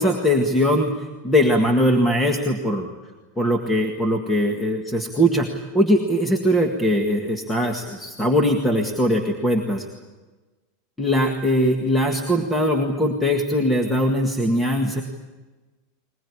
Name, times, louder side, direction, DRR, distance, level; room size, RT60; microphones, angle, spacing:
voice 1, 0.0-2.9 3.4-9.9 11.0-15.0, equal, 5° left, 2 dB, 1.8 m, -21 dB
21.5 x 21.5 x 9.8 m, 1.2 s
supercardioid pair, 170°, 0 cm